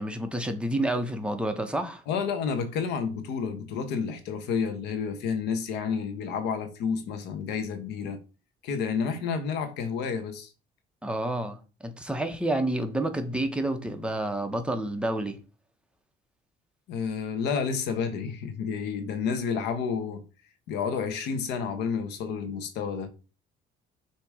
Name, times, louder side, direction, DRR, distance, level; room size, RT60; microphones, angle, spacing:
voice 1, 0.0-2.0 11.0-15.4, right 1 dB, 5° right, 1.0 m, -29 dB
voice 2, 2.1-8.2 8.6-10.5 16.9-20.2 20.7-23.1, left 6 dB, 85° left, 1.1 m, -30 dB
6.6 x 3.0 x 4.8 m
cardioid pair, 110°, 17 cm